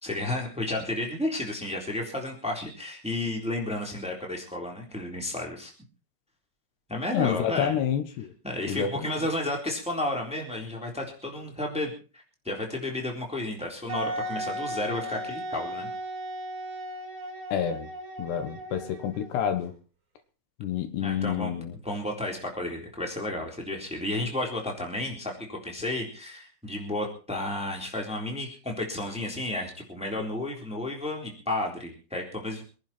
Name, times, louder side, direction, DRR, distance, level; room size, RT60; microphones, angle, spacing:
voice 1, 0.0-5.7 6.9-7.7 8.4-11.9 12.4-15.9 21.0-21.5 21.8-32.6, left 1 dB, ahead, 2.9 m, -32 dB
voice 2, 7.1-8.3 8.7-8.9 17.5-17.9 18.2-19.7 20.6-21.7, left 9 dB, 75° left, 3.3 m, -28 dB
Wind instrument woodwind instrument, 13.9-19.5, equal, 50° right, 3.6 m, -36 dB
25.0 x 11.0 x 4.4 m
omnidirectional pair, 5.0 m